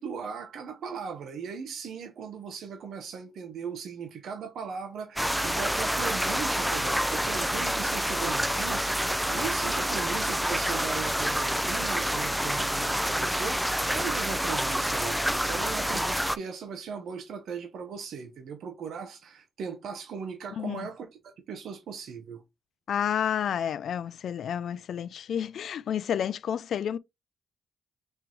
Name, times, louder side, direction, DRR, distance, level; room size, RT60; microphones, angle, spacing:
voice 1, 0.0-22.4, right 6 dB, 75° right, 0.9 m, -38 dB
sound 1, 5.2-16.4, equal, 5° right, 0.4 m, -28 dB
voice 2, 20.6-20.9 22.9-27.0, left 9 dB, 70° left, 0.4 m, -30 dB
4.5 x 3.0 x 3.8 m
cardioid pair, 75°, 0 cm